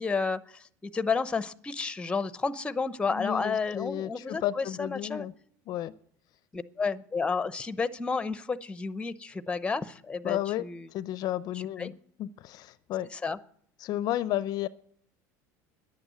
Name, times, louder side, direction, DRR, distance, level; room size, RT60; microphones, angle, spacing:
voice 1, 0.0-5.3 6.5-10.9 11.8-11.9 13.1-13.4, left 4 dB, 15° left, 0.7 m, -31 dB
voice 2, 3.1-5.3 5.7-5.9 10.2-10.7 10.9-13.1 13.8-14.7, left 13 dB, 50° left, 0.5 m, -32 dB
10.5 x 8.9 x 9.3 m
supercardioid pair, 115°, 8 cm